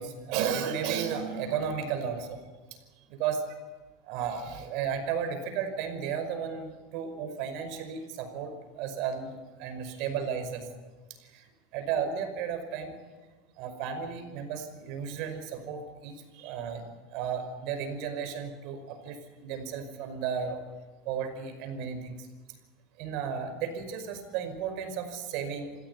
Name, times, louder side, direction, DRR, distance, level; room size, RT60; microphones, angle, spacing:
voice 1, 0.0-2.4 2.7-2.8 3.1-3.4 4.0-10.7 11.2-13.0 13.6-16.8 17.1-20.6 21.1-22.3 23.0-25.8, right 7 dB, 65° right, 8 dB, 5.5 m, -34 dB
27.0 x 16.0 x 9.7 m, 1.4 s
supercardioid pair, 115°, 0 cm